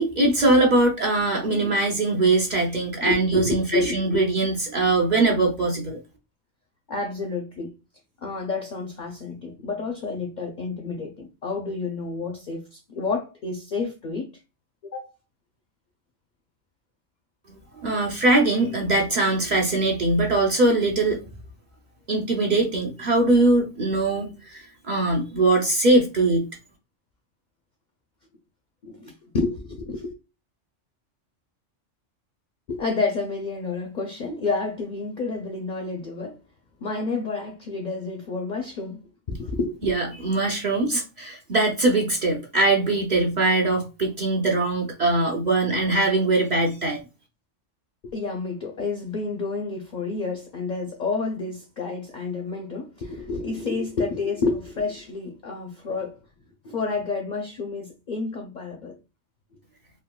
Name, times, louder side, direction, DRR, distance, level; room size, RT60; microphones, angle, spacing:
voice 1, 0.0-6.0 17.5-21.2 22.1-26.5 39.8-47.0, right 2 dB, 45° right, 0.6 m, -22 dB
voice 2, 3.0-4.2 6.9-7.7 8.2-14.3 14.8-15.1 28.8-30.1 32.7-36.4 36.8-39.0 39.3-39.9 48.0-56.2 56.6-59.0, left 4 dB, 65° left, 0.4 m, -29 dB
3.6 x 2.3 x 2.2 m
omnidirectional pair, 1.3 m